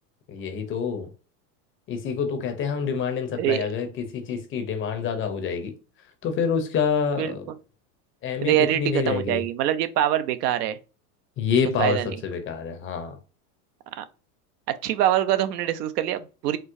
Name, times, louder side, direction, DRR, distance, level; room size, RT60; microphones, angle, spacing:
voice 1, 0.3-1.1 1.9-5.7 6.2-7.4 8.2-9.4 11.4-13.2, left 6 dB, 25° left, 0.5 m, -27 dB
voice 2, 3.3-3.7 7.2-7.3 8.4-10.8 11.8-12.2 14.0-14.1 14.8-16.6, right 12 dB, 80° right, 0.6 m, -24 dB
4.4 x 2.0 x 2.4 m
supercardioid pair, 115°, 47 cm